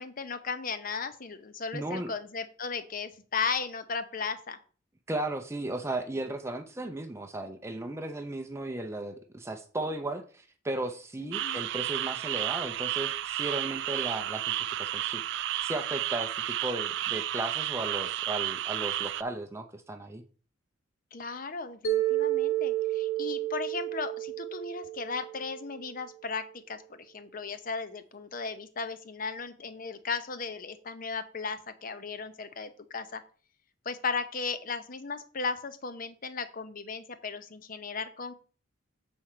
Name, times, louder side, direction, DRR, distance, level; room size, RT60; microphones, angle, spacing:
voice 1, 0.0-4.6 11.2-11.6 21.1-33.2 33.8-38.3, left 5 dB, 45° left, 11 dB, 0.7 m, -36 dB
voice 2, 1.7-2.1 5.1-20.2, right 2 dB, 15° right, 5 dB, 0.6 m, -35 dB
sound 1, 11.3-19.2, right 13 dB, 60° right, 0.3 m, -32 dB
Mallet percussion, 21.8-26.0, right 14 dB, 85° left, 1.2 m, -31 dB
7.6 x 4.3 x 4.9 m, 0.40 s
head